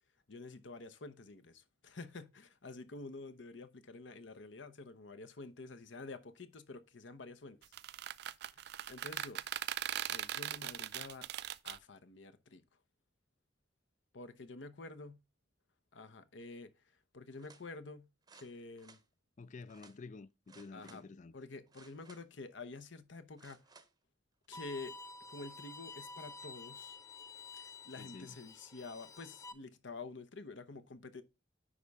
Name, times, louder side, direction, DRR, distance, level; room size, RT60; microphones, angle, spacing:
voice 1, 0.3-7.7 8.5-9.4 10.1-11.3 11.6-12.6 14.1-15.2 15.9-16.7 17.1-18.1 18.3-19.0 20.7-21.0 21.3-23.6 24.5-24.9 25.3-27.0 27.6-31.2, left 3 dB, 70° left, 0.8 m, -49 dB
sound 1, 7.6-11.8, right 11 dB, 60° right, 0.4 m, -40 dB
sound 2, 17.3-17.6 18.2-19.0 19.7-20.0 20.5-21.0 21.7-22.4 23.3-23.9 24.4-24.5, right 4 dB, 20° right, 0.7 m, -61 dB
voice 2, 19.4-21.3 28.0-28.4, left 4 dB, 40° left, 0.4 m, -50 dB
Bowed string instrument, 24.5-29.5, left 3 dB, 15° left, 0.9 m, -50 dB
10.0 x 4.1 x 3.5 m
head